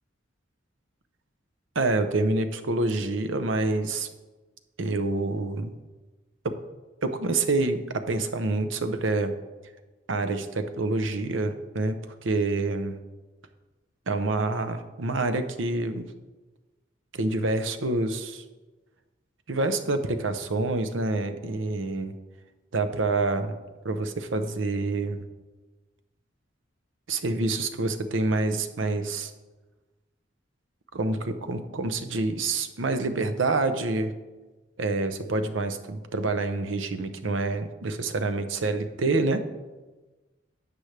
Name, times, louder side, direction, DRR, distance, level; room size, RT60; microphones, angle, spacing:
voice 1, 1.7-4.1 4.8-5.7 6.4-6.5 7.0-9.3 10.1-13.0 14.1-16.0 17.1-18.4 19.5-22.1 22.7-23.6 23.8-25.2 27.1-29.3 30.9-34.1 34.8-39.4, right 2 dB, 80° right, 9 dB, 0.8 m, -27 dB
12.0 x 7.8 x 3.4 m, 1.2 s
head